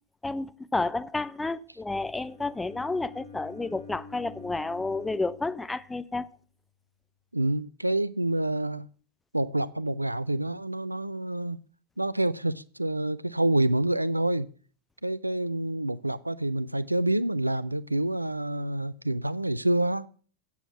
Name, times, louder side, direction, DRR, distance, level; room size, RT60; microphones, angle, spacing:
voice 1, 0.2-6.3, left 3 dB, 10° left, 0.6 m, -31 dB
Bowed string instrument, 2.1-6.2, left 4 dB, 40° left, 5.5 m, -48 dB
voice 2, 7.3-8.9 9.3-11.6 12.0-14.5 15.0-20.1, right 1 dB, 85° right, 0.4 m, -27 dB
9.0 x 7.1 x 5.8 m
figure-of-eight pair, 90°, 0 cm